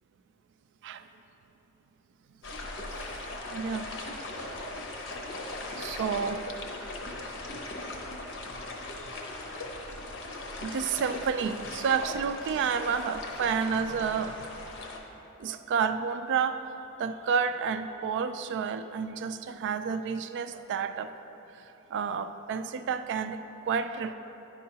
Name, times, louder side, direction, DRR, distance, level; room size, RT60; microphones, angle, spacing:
sound 1, 2.4-15.0, left 2 dB, 60° left, 0.7 m, -39 dB
voice 1, 3.5-3.9 4.2-4.8 5.4-5.5 5.8-6.4 6.7-7.0 10.6-14.7 15.4-16.6 17.0-21.1 21.5-21.6 21.9-24.1, right 6 dB, 55° right, 10 dB, 0.3 m, -30 dB
10.0 x 5.5 x 2.8 m, 3.0 s
head